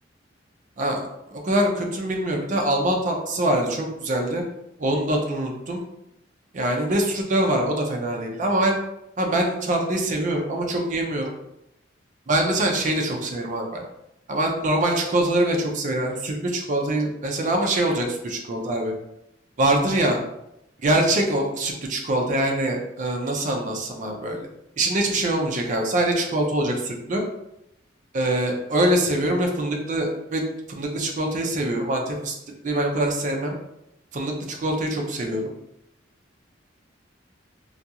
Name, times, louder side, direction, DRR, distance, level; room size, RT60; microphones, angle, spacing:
voice 1, 0.8-4.4 4.8-5.8 6.5-8.8 9.2-11.3 12.3-13.8 14.3-18.9 19.6-20.2 20.8-24.5 24.8-27.2 28.1-30.4 30.7-32.3 32.6-33.5 34.1-35.4, right 1 dB, 40° right, 2 dB, 0.4 m, -24 dB
2.4 x 2.3 x 2.7 m, 0.84 s
head